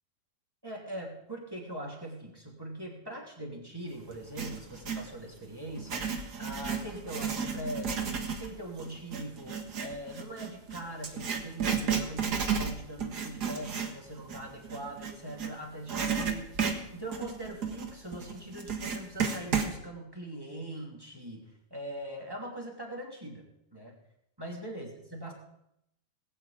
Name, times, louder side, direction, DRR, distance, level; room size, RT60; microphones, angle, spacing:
voice 1, 0.6-16.4 16.9-24.0 24.4-25.3, right 1 dB, 5° right, -1 dB, 2.2 m, -42 dB
Writing, 4.1-5.1 5.7-15.5 15.9-19.7, right 6 dB, 55° right, 1.1 m, -33 dB
19.5 x 7.0 x 8.7 m, 0.79 s
omnidirectional pair, 4.4 m